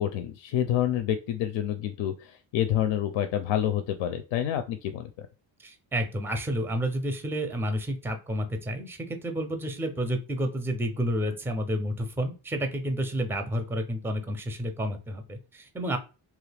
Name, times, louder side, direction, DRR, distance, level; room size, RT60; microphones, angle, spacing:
voice 1, 0.0-5.3, left 11 dB, 85° left, 8 dB, 0.5 m, -28 dB
voice 2, 5.6-16.0, equal, 5° right, 6 dB, 0.4 m, -30 dB
3.0 x 2.4 x 3.3 m, 0.33 s
cardioid pair, 130°, 44 cm